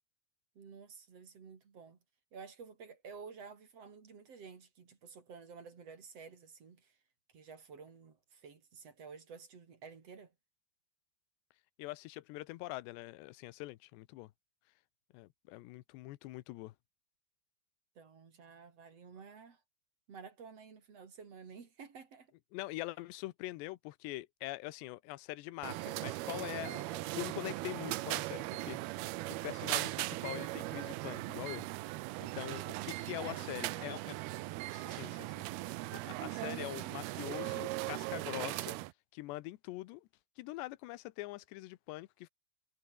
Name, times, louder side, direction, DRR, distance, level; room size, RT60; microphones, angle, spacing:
voice 1, 0.5-2.0 2.3-7.0 7.3-10.3 17.9-19.6 20.1-22.3 33.2-34.0, right 5 dB, 40° right, 3.3 m, -52 dB
voice 2, 11.8-14.3 15.1-16.7 22.5-29.1 29.4-31.7 32.2-34.2 34.7-35.3 35.9-38.8 39.1-40.1 40.4-42.3, left 19 dB, 80° left, 3.0 m, -44 dB
sound 1, 25.6-38.9, right 19 dB, 80° right, 2.4 m, -39 dB
omnidirectional pair, 5.1 m